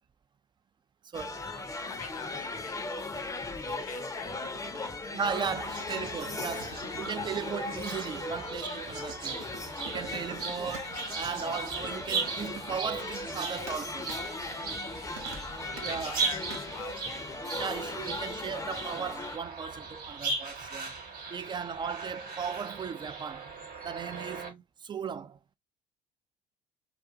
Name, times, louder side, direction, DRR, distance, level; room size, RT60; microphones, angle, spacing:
sound 1, 1.1-19.4, left 3 dB, 20° left, 0.6 m, -38 dB
voice 1, 1.1-1.5 5.1-9.5 9.8-14.1 15.8-16.3 17.5-21.0 21.3-23.5 23.8-25.4, right 6 dB, 25° right, 0.4 m, -37 dB
voice 2, 1.9-2.8 3.5-4.9 5.6-6.1 6.5-7.1 9.8-10.4 14.8-15.2 15.6-17.1 17.5-18.2 21.4-21.6 24.0-24.4, left 8 dB, 90° left, 0.4 m, -47 dB
sound 2, 4.2-16.6, right 5 dB, 75° right, 0.9 m, -50 dB
sound 3, 5.5-24.5, right 4 dB, 55° right, 1.0 m, -39 dB
2.5 x 2.3 x 2.6 m
hypercardioid pair, 60°, 17 cm